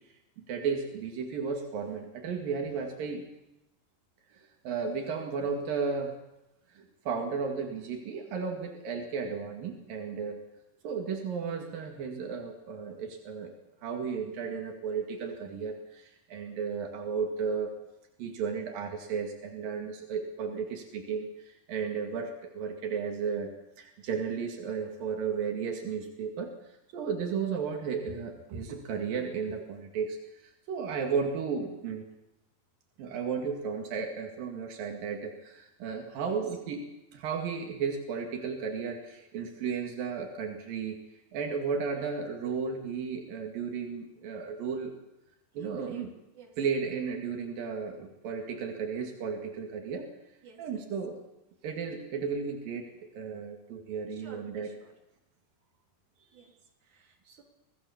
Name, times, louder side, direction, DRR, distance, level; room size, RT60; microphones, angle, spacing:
voice 1, 0.4-3.2 4.3-6.2 6.7-10.4 10.8-13.5 13.8-17.7 18.2-23.5 23.8-26.5 26.9-32.0 33.0-41.0 41.3-44.9 45.6-46.1 46.6-50.1 50.6-51.2 51.6-54.7 56.3-56.5, right 5 dB, 90° right, 2 dB, 3.9 m, -34 dB
voice 2, 45.5-46.6 50.4-50.9 54.1-54.9 56.3-56.5 56.8-57.4, right 5 dB, 60° right, 1 dB, 4.6 m, -52 dB
24.5 x 17.5 x 7.2 m, 0.92 s
omnidirectional pair, 3.9 m